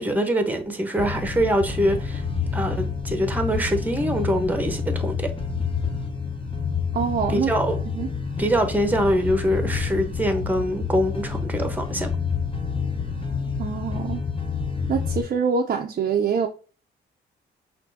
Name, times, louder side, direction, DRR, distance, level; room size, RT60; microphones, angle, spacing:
voice 1, 0.0-2.2 2.5-5.3 7.3-7.8 8.4-12.1, equal, 10° right, 0.9 m, -24 dB
sound 1, 1.0-15.2, left 5 dB, 25° left, 1.0 m, -28 dB
voice 2, 6.9-7.5 7.9-8.1 13.6-14.2 14.9-16.5, right 6 dB, 45° right, 0.6 m, -25 dB
6.0 x 2.6 x 2.7 m
cardioid pair, 90°, 20 cm